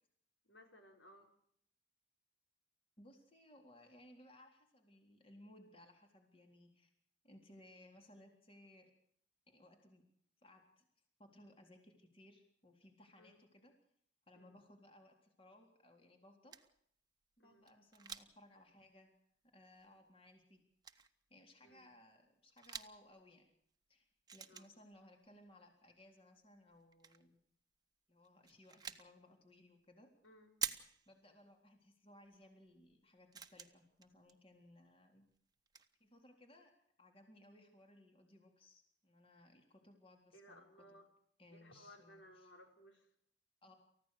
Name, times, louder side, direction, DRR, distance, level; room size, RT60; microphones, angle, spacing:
voice 1, 0.4-1.3 13.2-13.4 14.3-14.5 17.4-17.7 21.6-21.9 24.5-24.7 30.2-30.5 40.3-41.1 41.5-43.1, equal, 85° left, 3 dB, 5.2 m, -61 dB
voice 2, 3.0-6.9 7.2-8.9 9.5-10.0 10.4-10.9 11.2-13.7 14.3-16.6 17.4-19.1 19.5-20.6 21.3-23.5 23.9-27.4 28.1-30.1 31.1-35.3 36.0-36.7 37.0-40.7 41.4-42.5 43.6-43.7, left 1 dB, 30° left, 3 dB, 3.8 m, -62 dB
sound 1, 16.5-16.8 17.7-18.4 18.7-18.8 19.8-19.9 20.8-21.1 22.5-23.0 24.3-24.9 26.7-27.2 28.2-29.1 30.6-31.2 32.3-32.4 32.9-33.0 33.3-34.3 35.3-35.4 35.7-35.9, right 7 dB, 20° right, 1.2 m, -46 dB
29.0 x 15.5 x 6.7 m, 0.67 s
head